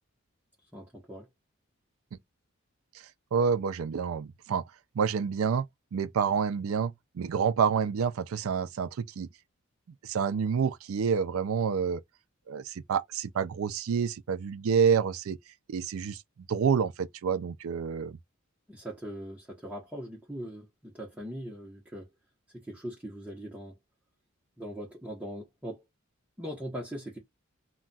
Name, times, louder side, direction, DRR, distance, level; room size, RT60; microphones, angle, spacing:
voice 1, 0.7-1.3 18.7-22.1 22.5-23.8 24.6-25.8 26.4-27.2, equal, 10° right, 0.8 m, -40 dB
voice 2, 3.3-4.6 4.9-5.7 5.9-9.3 10.0-12.0 12.5-15.4 15.7-16.2 16.5-18.2, right 6 dB, 85° right, 0.4 m, -28 dB
2.3 x 2.2 x 3.8 m
head